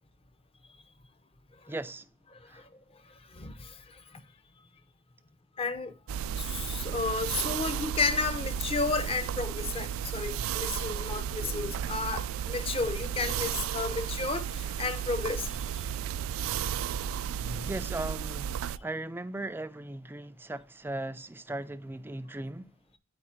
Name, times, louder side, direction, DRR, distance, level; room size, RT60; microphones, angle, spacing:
voice 1, 1.7-2.1 2.5-2.6 17.6-18.5 18.8-22.7, right 2 dB, 10° right, 0.4 m, -37 dB
voice 2, 2.3-4.2 5.6-5.9 6.4-15.8 18.8-18.9, left 4 dB, 30° left, 0.6 m, -33 dB
sound 1, 6.1-18.8, right 9 dB, 85° right, 0.3 m, -33 dB
sound 2, 12.6-18.1, equal, 85° left, 3.6 m, -50 dB
8.7 x 4.5 x 4.2 m
head